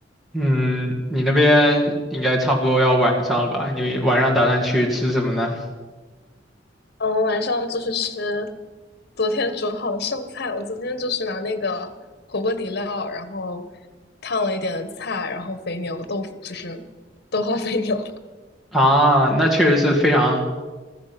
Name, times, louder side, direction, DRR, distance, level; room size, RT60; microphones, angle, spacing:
voice 1, 0.3-5.6 18.7-20.4, equal, ahead, -1 dB, 2.1 m, -19 dB
voice 2, 7.0-8.5 9.2-11.9 12.3-13.6 14.2-16.8 17.3-18.1, left 3 dB, 60° left, 10 dB, 1.4 m, -26 dB
15.5 x 14.0 x 6.0 m, 1.3 s
head